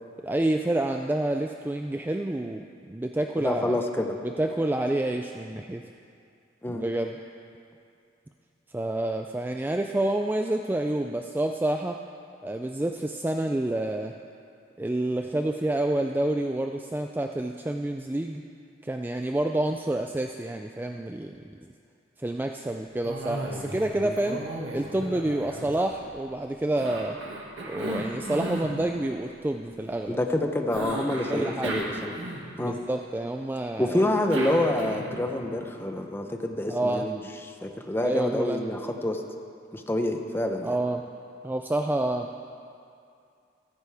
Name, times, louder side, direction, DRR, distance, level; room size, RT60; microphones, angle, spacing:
voice 1, 0.2-3.8 4.2-5.8 6.7-7.2 8.7-12.0 12.4-14.1 14.8-18.4 18.8-21.5 22.2-24.4 24.7-27.2 27.7-30.2 31.3-31.8 32.6-34.0 36.7-37.3 38.0-38.7 40.6-41.0 41.4-42.3, right 1 dB, 10° right, 4 dB, 0.3 m, -28 dB
voice 2, 3.4-4.2 6.6-6.8 24.0-24.1 30.1-32.1 32.6-32.7 33.8-37.2 37.6-39.2 39.7-40.7, left 1 dB, 10° left, 4 dB, 0.7 m, -27 dB
Cough, 23.0-23.9 24.2-26.2 26.8-28.7 30.7-32.7 33.9-35.3, right 1 dB, 75° right, 1.9 m, -34 dB
14.5 x 14.0 x 3.5 m, 2.4 s
head